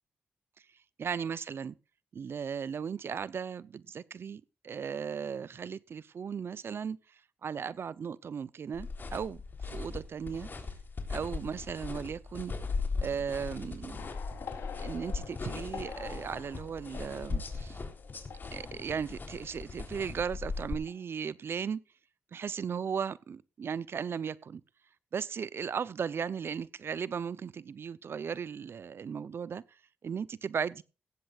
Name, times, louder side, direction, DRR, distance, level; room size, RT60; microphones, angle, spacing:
voice 1, 1.0-1.7 2.1-7.0 7.4-10.5 11.1-12.6 13.0-14.1 14.8-17.8 18.5-21.8 22.3-24.6 25.1-29.6 30.0-30.8, right 7 dB, 65° right, 0.6 m, -36 dB
sound 1, 8.7-20.7, left 4 dB, 50° left, 3.5 m, -38 dB
sound 2, 14.0-20.4 20.7-21.0, left 6 dB, 80° left, 3.5 m, -47 dB
17.0 x 15.5 x 2.4 m
cardioid pair, 55°, 4 cm